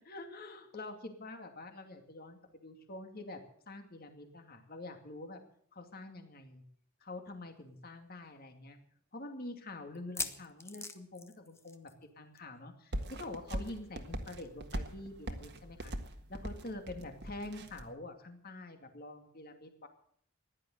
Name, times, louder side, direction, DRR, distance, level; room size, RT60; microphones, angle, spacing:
voice 1, 0.0-5.4 5.7-6.6 7.0-8.8 9.1-15.9 16.3-19.9, left 2 dB, 45° left, 6 dB, 2.4 m, -46 dB
sound 1, 7.3-7.4 7.7-7.8 8.4-8.5 9.9-12.1 12.3-12.6 12.8-12.9 14.4-14.5, left 4 dB, 10° left, 0.9 m, -42 dB
sound 2, 12.9-17.9, right 1 dB, 55° right, 1.6 m, -41 dB
15.5 x 11.0 x 7.8 m, 0.62 s
head